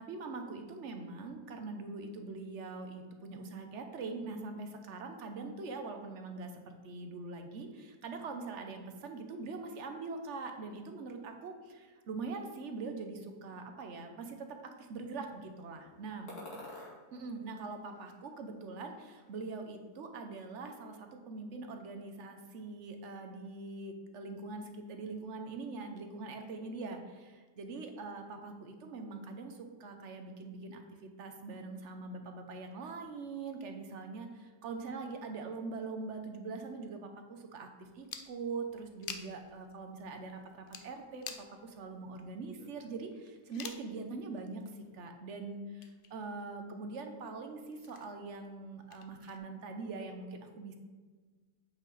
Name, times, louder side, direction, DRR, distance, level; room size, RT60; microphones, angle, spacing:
voice 1, 0.0-16.3 17.1-50.8, right 3 dB, 55° right, 5 dB, 1.0 m, -43 dB
sound 1, 16.3-17.0 17.5-18.5 18.7-19.6, left 1 dB, 50° left, 2.3 m, -50 dB
sound 2, 37.8-43.9 44.4-44.5 44.7-45.3 45.5-46.5 46.8-49.4, left 7 dB, 75° left, 0.4 m, -50 dB
8.5 x 5.4 x 4.0 m, 1.4 s
omnidirectional pair, 1.7 m